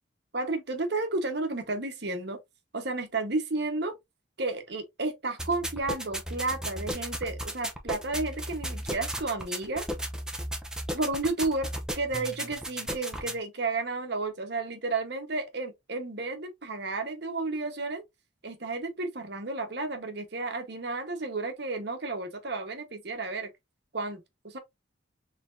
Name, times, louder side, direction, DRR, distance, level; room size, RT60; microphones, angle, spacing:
voice 1, 0.3-2.4 2.7-4.0 4.4-9.9 10.9-18.0 18.4-23.5 23.9-24.6, right 3 dB, 55° right, 1.1 m, -32 dB
sound 1, 5.4-13.4, right 1 dB, 5° right, 0.6 m, -35 dB
4.2 x 3.4 x 2.5 m
head